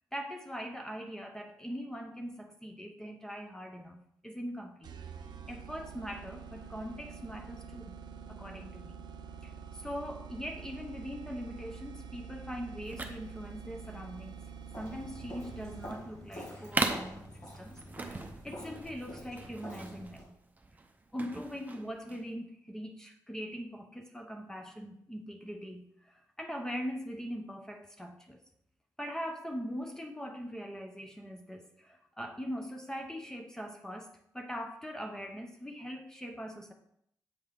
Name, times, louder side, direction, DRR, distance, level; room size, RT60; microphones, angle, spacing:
voice 1, 0.1-4.9 5.5-8.0 8.3-9.0 9.4-14.4 14.8-20.4 21.1-28.4 29.0-34.1 34.3-36.7, equal, 10° left, 3 dB, 0.7 m, -41 dB
sound 1, 4.8-16.3, right 6 dB, 80° right, 0.6 m, -47 dB
sound 2, 12.8-22.3, right 2 dB, 25° right, 0.7 m, -39 dB
Walk footsteps, 14.7-20.3, equal, 50° left, 2.0 m, -46 dB
7.7 x 5.3 x 3.8 m, 0.70 s
wide cardioid pair, 120°, 7 cm